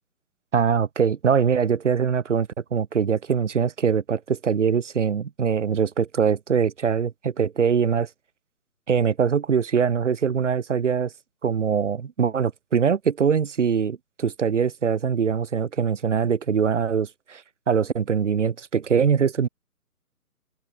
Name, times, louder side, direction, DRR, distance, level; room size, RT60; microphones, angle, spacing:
voice 1, 0.5-8.1 8.9-11.1 11.4-17.4 17.7-19.5, right 7 dB, 50° right, 5.7 m, -23 dB
open air
hypercardioid pair, 160°, 46 cm